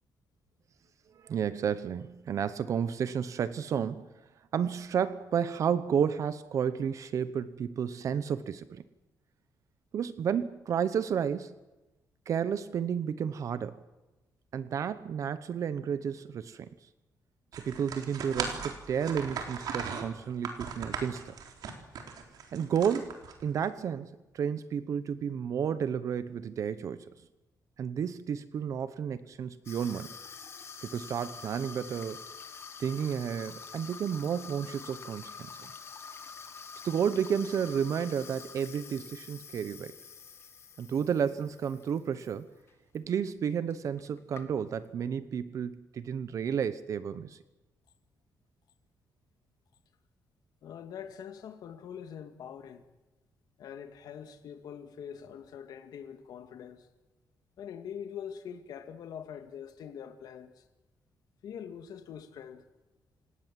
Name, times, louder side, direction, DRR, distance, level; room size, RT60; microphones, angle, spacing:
voice 1, 1.1-4.1 4.5-8.8 9.9-11.5 12.3-13.8 14.5-16.7 17.5-21.3 22.5-27.1 27.8-30.1 30.9-32.2 32.8-35.7 36.8-39.9 40.8-42.5 42.9-47.4, right 7 dB, 50° right, 0.9 m, -32 dB
sound 1, 17.5-23.7, right 6 dB, 70° right, 3.7 m, -38 dB
Water tap faucet / Sink (filling or washing), 29.7-42.4 42.7-43.0 43.7-43.8 44.0-44.9, left 6 dB, 40° left, 2.1 m, -47 dB
voice 2, 50.6-52.8 53.6-56.9 57.6-60.6 61.4-62.6, left 8 dB, 75° left, 2.0 m, -44 dB
29.0 x 18.0 x 7.6 m
wide cardioid pair, 180°, 7 cm